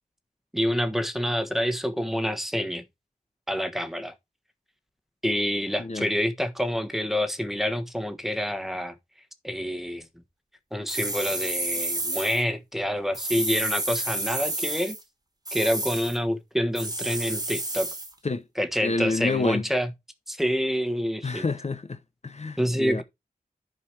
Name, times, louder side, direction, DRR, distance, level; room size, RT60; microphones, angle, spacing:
voice 1, 0.5-2.8 3.5-4.1 5.2-9.0 9.4-10.1 10.7-15.0 15.5-17.9 18.6-19.9 20.3-21.4 22.6-23.0, equal, ahead, 1.3 m, -27 dB
sound 1, 10.9-12.4 13.1-15.0 15.4-16.2 16.7-18.1, right 2 dB, 25° right, 1.7 m, -30 dB
voice 2, 18.8-19.6 21.2-23.0, left 3 dB, 45° left, 0.8 m, -28 dB
11.0 x 4.8 x 4.5 m
wide cardioid pair, 75°, 15 cm